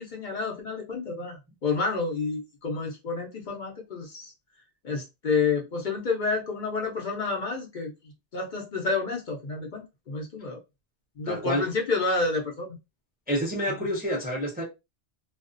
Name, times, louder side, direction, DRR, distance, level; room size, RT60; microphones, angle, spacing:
voice 1, 0.0-4.3 4.8-10.6 11.2-12.8, left 4 dB, 55° left, 0.7 m, -29 dB
voice 2, 11.3-11.6 13.3-14.6, equal, 10° right, 0.4 m, -28 dB
2.4 x 2.1 x 2.5 m
omnidirectional pair, 1.1 m